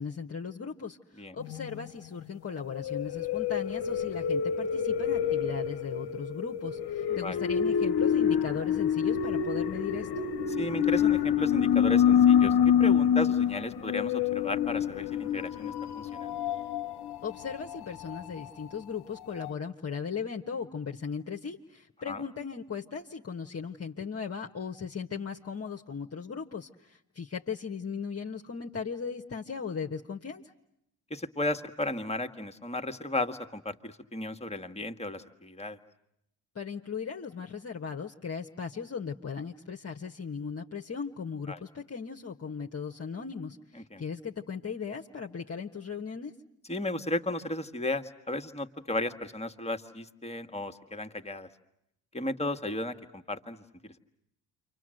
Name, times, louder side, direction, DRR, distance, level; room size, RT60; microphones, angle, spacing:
voice 1, 0.0-10.3 17.2-30.4 36.5-46.3, left 6 dB, 30° left, 1 dB, 1.4 m, -37 dB
sound 1, 1.5-1.7 2.8-18.7 19.2-19.3 19.4-19.5, left 8 dB, 60° left, 1.1 m, -27 dB
voice 2, 7.1-7.4 10.6-16.4 22.1-22.2 31.1-35.8 41.5-41.6 43.9-44.0 46.7-51.5 52.1-54.0, left 1 dB, 15° left, 6 dB, 1.8 m, -34 dB
29.0 x 26.0 x 7.8 m, 0.80 s
hypercardioid pair, 50°, 45 cm